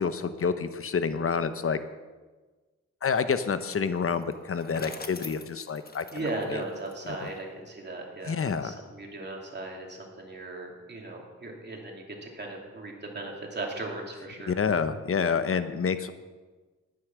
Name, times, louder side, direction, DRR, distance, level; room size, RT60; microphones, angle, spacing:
voice 1, 0.0-1.8 3.0-6.6 7.2-7.3 8.3-8.8 14.5-16.1, left 6 dB, 50° left, 11 dB, 0.8 m, -28 dB
Bicycle, 4.2-7.4, left 3 dB, 30° left, 1.2 m, -44 dB
voice 2, 6.1-14.5, right 2 dB, 35° right, -1 dB, 2.8 m, -37 dB
9.8 x 9.7 x 6.2 m, 1.3 s
cardioid pair, 75°, 29 cm